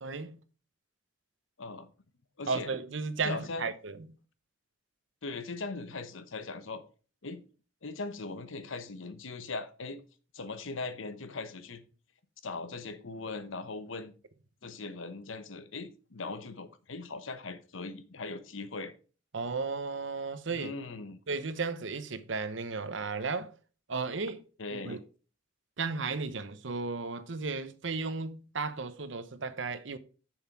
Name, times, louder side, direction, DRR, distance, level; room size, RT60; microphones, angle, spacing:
voice 1, 0.0-0.4 2.5-4.0 19.3-20.7 21.3-23.5 23.9-24.4 24.8-25.0 25.8-30.0, right 4 dB, 70° right, 0.9 m, -34 dB
voice 2, 1.6-1.9 2.4-2.7 3.2-3.7 5.2-6.8 7.2-7.4 7.8-10.0 10.3-11.8 12.4-14.1 14.6-18.9 20.5-21.2 24.6-25.0, left 3 dB, 80° left, 1.0 m, -39 dB
7.0 x 6.4 x 4.6 m
head